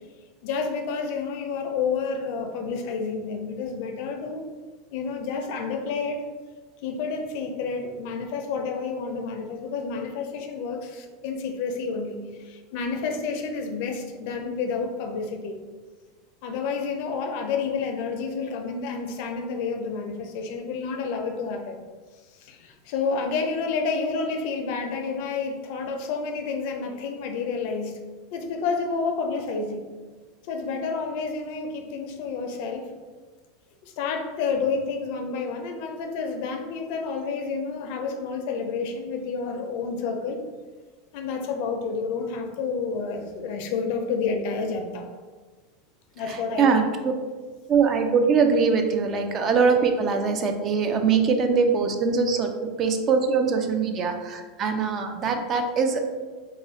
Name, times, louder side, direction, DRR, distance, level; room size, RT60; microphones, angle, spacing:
voice 1, 0.4-4.4 4.9-6.2 6.8-15.6 16.4-21.8 22.4-27.9 28.3-29.8 30.5-32.9 33.8-40.4 41.1-45.1 46.2-46.9, left 4 dB, 60° left, 5 dB, 0.4 m, -29 dB
voice 2, 46.2-47.1 47.7-56.0, right 5 dB, 35° right, 5 dB, 0.3 m, -22 dB
2.4 x 2.0 x 3.9 m, 1.4 s
supercardioid pair, 140°, 0 cm